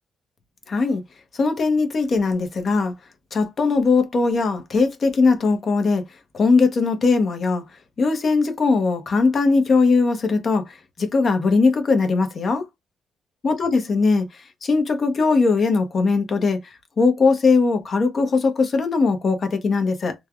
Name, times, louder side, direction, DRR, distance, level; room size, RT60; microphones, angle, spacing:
voice 1, 0.7-1.0 1.3-2.9 3.3-6.0 6.3-7.6 8.0-12.7 13.4-16.6 17.0-20.1, left 4 dB, 45° left, 0.8 m, -20 dB
3.2 x 2.2 x 2.3 m
cardioid pair, 90°, 0 cm